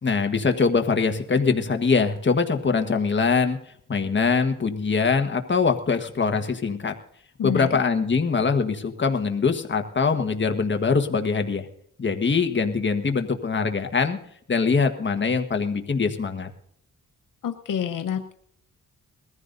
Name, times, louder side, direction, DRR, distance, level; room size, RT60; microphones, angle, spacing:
voice 1, 0.0-3.6 3.9-6.9 7.4-11.7 12.0-14.2 14.5-16.5, left 5 dB, 35° left, 6 dB, 1.4 m, -23 dB
voice 2, 17.4-18.3, left 8 dB, 75° left, 7 dB, 1.0 m, -28 dB
21.5 x 14.5 x 2.7 m, 0.67 s
cardioid pair, 80°, 32 cm